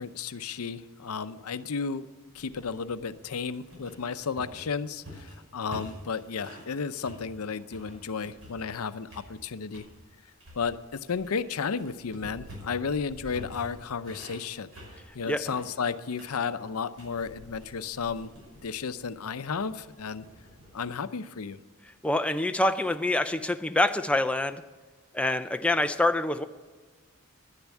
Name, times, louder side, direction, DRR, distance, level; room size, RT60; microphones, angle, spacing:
voice 1, 0.0-2.1 2.3-9.9 10.5-14.7 15.1-18.3 18.6-20.3 20.7-21.6, left 5 dB, 90° left, 13 dB, 0.6 m, -33 dB
sound 1, 2.3-6.7 7.0-8.8 9.1-9.9 10.4-20.9, equal, 65° right, 5.9 m, -48 dB
voice 2, 22.0-24.6 25.1-26.4, left 2 dB, 5° left, 8 dB, 0.4 m, -26 dB
10.5 x 10.5 x 8.3 m, 1.3 s
head